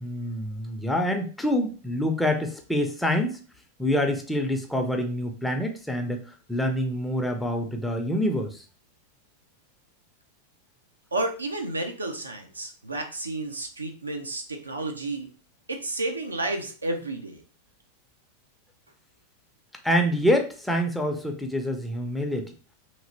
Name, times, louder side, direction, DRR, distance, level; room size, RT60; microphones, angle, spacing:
voice 1, 0.0-3.4 3.8-6.2 6.5-8.6 19.8-22.5, equal, 5° left, 3 dB, 0.5 m, -26 dB
voice 2, 11.1-15.3 15.7-17.4, right 2 dB, 80° right, 3 dB, 0.5 m, -31 dB
3.0 x 2.8 x 2.6 m, 0.37 s
figure-of-eight pair, 90°, 0 cm